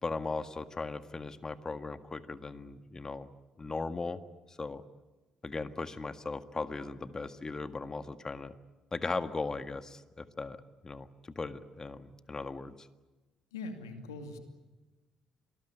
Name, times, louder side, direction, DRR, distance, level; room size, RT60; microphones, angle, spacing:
voice 1, 0.0-3.3 3.6-4.2 4.5-4.8 5.4-8.5 8.9-10.6 10.8-11.1 11.4-12.9, left 3 dB, 30° left, 10 dB, 1.7 m, -38 dB
voice 2, 13.5-14.4, left 3 dB, 90° left, 6 dB, 2.5 m, -41 dB
26.5 x 20.0 x 9.9 m, 1.2 s
hypercardioid pair, 45°, 2 cm